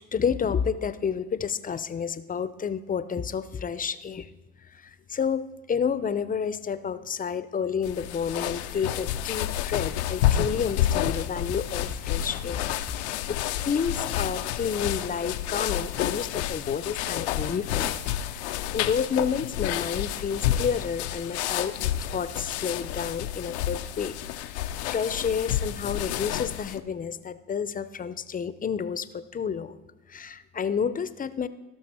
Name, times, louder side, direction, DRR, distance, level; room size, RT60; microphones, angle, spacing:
voice 1, 0.1-4.3 5.1-12.6 12.9-18.0 18.3-24.2 24.4-29.7 30.1-31.5, left 6 dB, 25° left, 14 dB, 0.6 m, -30 dB
sound 1, 7.8-26.8, left 11 dB, 85° left, 0.5 m, -30 dB
17.0 x 5.9 x 4.3 m, 1.1 s
hypercardioid pair, 65°, 32 cm